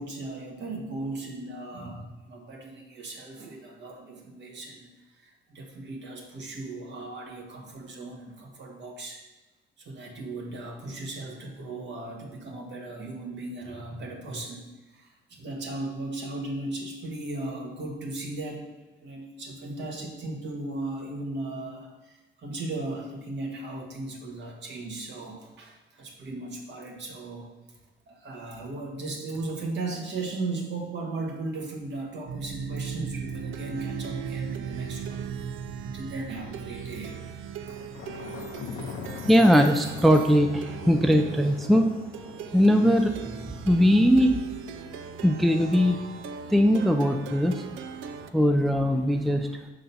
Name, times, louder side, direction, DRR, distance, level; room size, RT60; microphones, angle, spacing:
voice 1, 0.0-4.9 5.2-9.2 9.8-14.6 14.9-18.6 19.0-27.5 28.1-35.2 35.8-37.2, right 2 dB, 65° right, 0 dB, 1.6 m, -37 dB
Plucked string instrument, 32.3-48.3, right 7 dB, 80° right, 0.5 m, -38 dB
Thunder, 37.7-43.0, left 6 dB, 75° left, 0.7 m, -41 dB
voice 2, 39.3-41.9 42.5-43.2 43.6-44.4 45.2-46.0 46.5-47.6 48.3-49.5, equal, ahead, 5 dB, 0.4 m, -20 dB
5.8 x 3.8 x 5.4 m, 1.1 s
cardioid pair, 90°, 20 cm